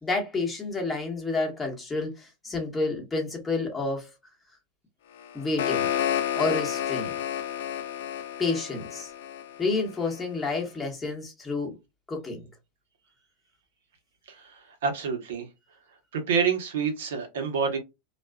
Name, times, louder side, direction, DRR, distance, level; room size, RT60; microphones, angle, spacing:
voice 1, 0.0-4.1 5.3-5.9 6.3-7.1 8.4-9.1 9.6-11.7 12.1-12.4, left 3 dB, 10° left, 1.0 m, -29 dB
sound 1, 5.2-10.2, left 10 dB, 85° left, 0.4 m, -30 dB
voice 2, 14.3-15.5 16.1-17.8, right 6 dB, 90° right, 1.0 m, -28 dB
2.4 x 2.3 x 2.2 m
supercardioid pair, 140°, 0 cm